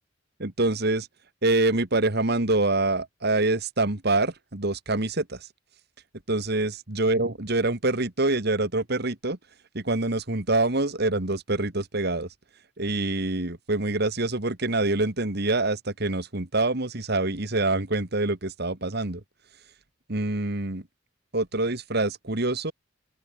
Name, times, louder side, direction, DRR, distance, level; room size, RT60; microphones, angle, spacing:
voice 1, 0.4-1.1 1.4-5.5 6.3-9.4 9.7-12.3 12.8-19.2 20.1-20.8 21.3-22.7, right 2 dB, 50° right, 2.0 m, -25 dB
open air
head